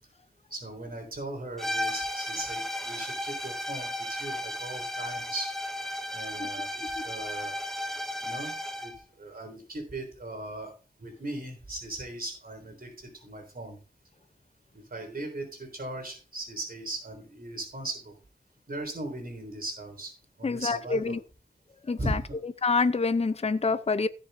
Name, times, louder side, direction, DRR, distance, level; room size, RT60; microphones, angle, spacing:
voice 1, 0.5-5.6 6.1-7.6 8.2-8.9 9.2-10.7 11.0-13.8 14.7-18.2 18.7-21.2 22.0-22.4, right 2 dB, 60° right, 3.8 m, -38 dB
sound 1, 1.6-9.0, left 1 dB, ahead, 1.5 m, -34 dB
voice 2, 20.4-21.1 21.9-22.2 22.6-24.1, left 4 dB, 35° left, 0.6 m, -26 dB
16.5 x 6.8 x 2.7 m
wide cardioid pair, 50°, 17 cm